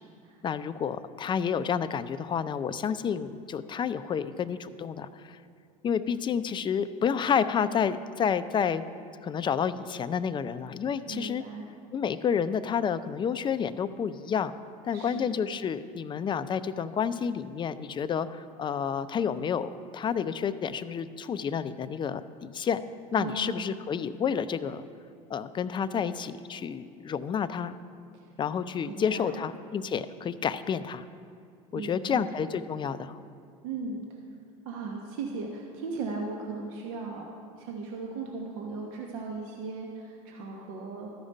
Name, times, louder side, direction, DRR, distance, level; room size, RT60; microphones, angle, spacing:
voice 1, 0.4-5.4 5.8-8.8 9.2-11.4 11.9-14.5 14.8-22.8 23.1-24.8 25.3-27.7 28.4-31.0 31.7-33.2, left 7 dB, 25° left, 14 dB, 0.4 m, -30 dB
voice 2, 11.1-11.7 14.9-15.4 23.2-23.7 28.1-28.3 28.9-29.5 31.7-32.4 33.6-34.0 34.6-41.1, right 4 dB, 70° right, 0 dB, 1.1 m, -37 dB
13.0 x 5.0 x 5.3 m, 2.4 s
hypercardioid pair, 85°, 19 cm